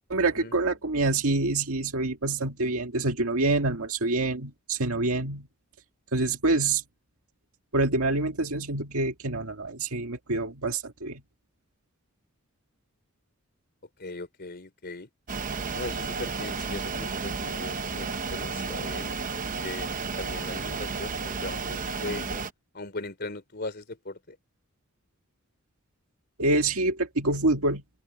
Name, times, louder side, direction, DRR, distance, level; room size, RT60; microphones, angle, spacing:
voice 1, 0.1-5.5 6.1-6.8 7.7-11.2 26.4-27.8, right 2 dB, 85° right, 1.9 m, -26 dB
voice 2, 14.0-15.1 15.7-19.2 19.6-22.4 22.7-24.4, left 2 dB, 50° left, 3.6 m, -39 dB
sound 1, 15.3-22.5, right 4 dB, 40° right, 0.8 m, -32 dB
open air
head